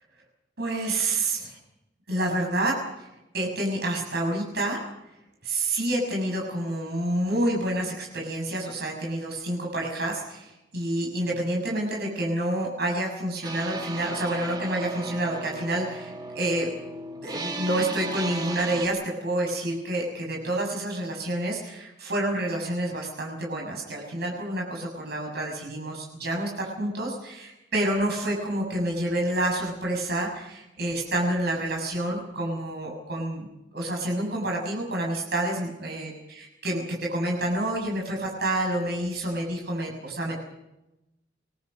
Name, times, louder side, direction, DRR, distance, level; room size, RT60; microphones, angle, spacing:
voice 1, 0.6-1.6 2.1-3.1 3.3-4.8 5.4-16.7 17.2-33.5 33.7-40.4, right 1 dB, 60° right, -1 dB, 6.8 m, -28 dB
sound 1, 13.4-18.9, right 2 dB, 25° right, 2.2 m, -36 dB
27.0 x 21.0 x 5.5 m, 0.91 s
head